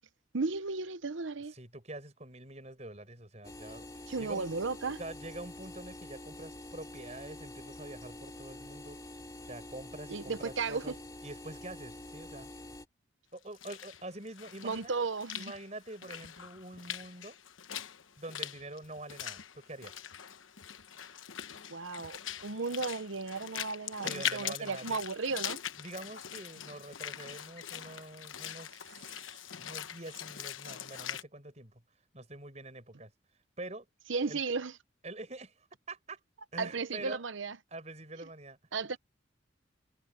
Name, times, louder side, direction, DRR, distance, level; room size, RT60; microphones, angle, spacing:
voice 1, 0.3-1.5 4.1-5.0 10.1-11.0 14.6-15.5 21.7-25.6 34.1-34.7 36.6-37.6 38.7-39.0, right 4 dB, 80° right, 0.9 m, -34 dB
voice 2, 1.5-3.9 4.2-4.5 5.0-9.0 9.5-11.0 11.2-12.5 13.3-15.1 15.3-17.4 18.2-20.0 24.0-25.0 25.8-31.8 32.1-33.1 33.6-33.9 34.3-34.4 35.0-35.5 35.9-36.2 36.5-37.2 37.7-38.6, right 2 dB, 35° right, 6.0 m, -45 dB
sound 1, 3.4-12.9, left 1 dB, 20° left, 2.6 m, -47 dB
Walk footsteps / Splash splatter, 13.4-31.2, left 10 dB, 90° left, 1.1 m, -42 dB
head